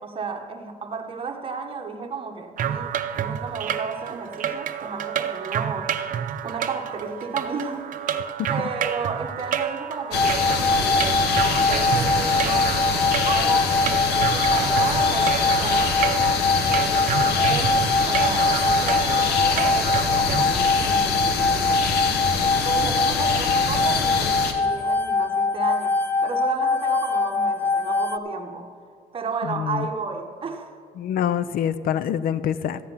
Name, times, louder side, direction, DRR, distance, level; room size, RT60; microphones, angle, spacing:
voice 1, 0.0-6.0 6.4-7.9 8.5-12.8 13.3-21.8 22.5-26.0 26.2-28.7 29.1-30.8, right 5 dB, 35° right, 1.2 m, -33 dB
sound 1, 2.6-20.5, right 9 dB, 50° right, 0.7 m, -29 dB
sound 2, 10.1-24.5, left 5 dB, 75° left, 1.4 m, -25 dB
sound 3, 10.1-28.2, left 3 dB, 10° left, 0.5 m, -23 dB
voice 2, 29.5-29.9 31.0-32.8, left 9 dB, 60° left, 0.5 m, -25 dB
14.0 x 9.2 x 5.6 m
cardioid pair, 110°, 17 cm